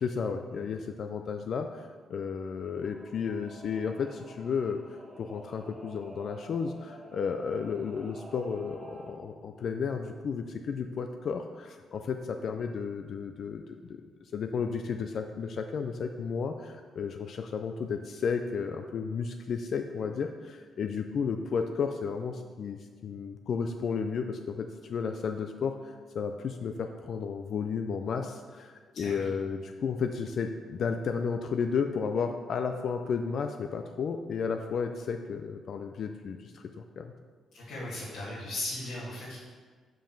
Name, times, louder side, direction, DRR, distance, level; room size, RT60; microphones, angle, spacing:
voice 1, 0.0-37.1, left 6 dB, 55° left, 6 dB, 0.4 m, -33 dB
Singing / Musical instrument, 2.8-9.1, right 2 dB, 15° right, 1.1 m, -50 dB
voice 2, 37.5-39.4, left 1 dB, 75° left, -9 dB, 1.9 m, -37 dB
5.5 x 5.2 x 5.8 m, 1.5 s
cardioid pair, 125°, 0 cm